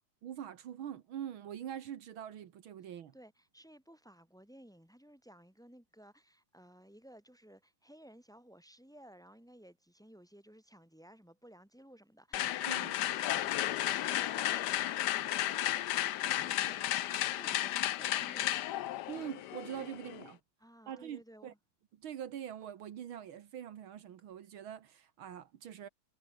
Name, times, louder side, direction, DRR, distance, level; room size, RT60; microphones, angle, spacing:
voice 1, 0.2-3.1 12.6-13.0 19.1-20.4 20.9-21.5 21.9-25.9, right 10 dB, 75° right, 2.0 m, -44 dB
voice 2, 3.1-18.9 20.6-21.6, equal, ahead, 3.8 m, -57 dB
sound 1, 12.3-20.3, left 13 dB, 65° left, 1.1 m, -33 dB
omnidirectional pair, 2.3 m